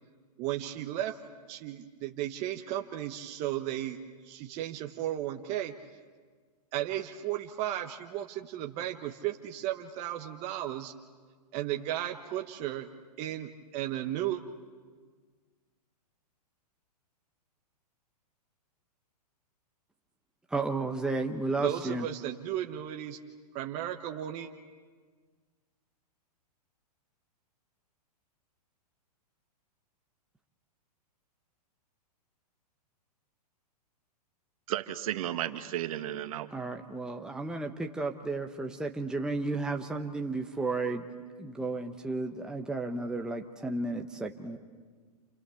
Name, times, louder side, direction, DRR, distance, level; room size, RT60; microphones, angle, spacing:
voice 1, 0.4-1.2 1.5-4.0 4.2-5.7 6.7-10.9 11.5-12.9 13.2-14.4 21.6-23.2 23.5-24.5, right 13 dB, 35° right, 4 dB, 1.2 m, -34 dB
voice 2, 20.5-22.1 36.5-41.1 41.4-44.6, right 3 dB, 5° right, 3 dB, 1.1 m, -33 dB
voice 3, 34.7-36.5, right 12 dB, 55° right, 8 dB, 1.7 m, -33 dB
29.0 x 28.0 x 7.1 m, 1.5 s
hypercardioid pair, 140°, 21 cm